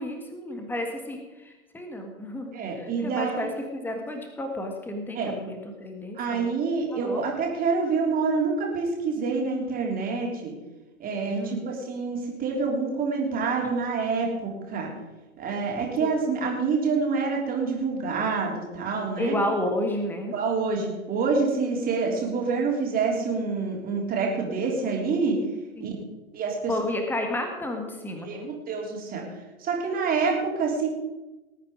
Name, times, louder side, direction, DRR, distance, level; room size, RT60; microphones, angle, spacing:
voice 1, 0.0-6.5 6.9-7.2 11.3-11.7 16.0-16.1 19.2-20.3 25.8-26.0 26.7-28.5, left 1 dB, 5° left, 4 dB, 1.6 m, -31 dB
voice 2, 2.5-3.5 5.1-5.3 6.2-10.5 11.0-14.9 15.4-19.4 20.3-25.4 25.8-25.9 26.3-26.7 28.2-29.2 29.6-30.9, right 4 dB, 20° right, 0 dB, 3.4 m, -27 dB
19.5 x 8.8 x 5.0 m, 1.1 s
hypercardioid pair, 120°, 43 cm